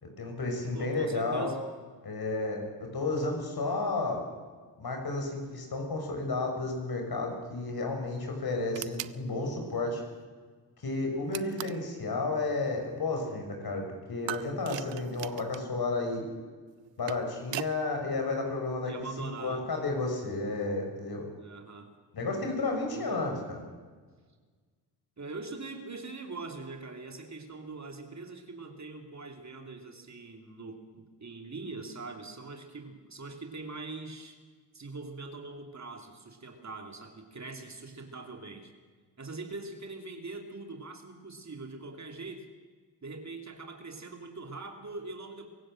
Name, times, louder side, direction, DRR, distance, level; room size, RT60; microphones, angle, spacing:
voice 1, 0.0-1.6 2.0-4.2 4.8-10.0 10.8-13.8 14.1-16.2 17.0-18.9 19.2-21.3 22.1-23.6, left 3 dB, 55° left, 3 dB, 6.4 m, -32 dB
voice 2, 0.7-1.6 18.8-19.6 21.4-21.9 22.9-23.3 25.2-34.4 34.7-38.7 39.2-42.4 43.0-45.5, right 3 dB, 40° right, 4 dB, 3.0 m, -42 dB
sound 1, 8.7-9.2 11.3-11.9 14.3-15.7 16.8-17.8, right 14 dB, 75° right, 0.7 m, -39 dB
24.0 x 15.5 x 7.7 m, 1.5 s
supercardioid pair, 55°, 45 cm